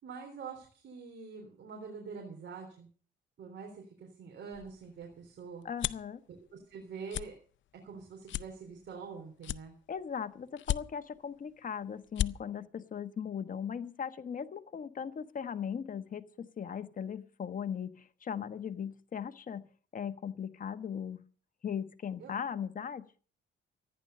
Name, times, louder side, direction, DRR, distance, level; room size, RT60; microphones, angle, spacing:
voice 1, 0.0-2.9 3.4-5.7 6.5-7.4 7.8-9.8 22.2-22.3, right 5 dB, 65° right, 3.7 m, -45 dB
sound 1, 4.5-6.1 6.6-6.8 7.1-7.3 7.8-7.9 8.3-9.1 9.4-10.1 10.6-11.2 11.7-11.8 12.0-12.3, left 13 dB, 70° left, 0.6 m, -35 dB
voice 2, 5.6-6.2 9.9-19.7 19.9-21.2 21.6-23.0, left 7 dB, 45° left, 1.2 m, -38 dB
14.0 x 10.0 x 6.7 m
cardioid pair, 90°, 20 cm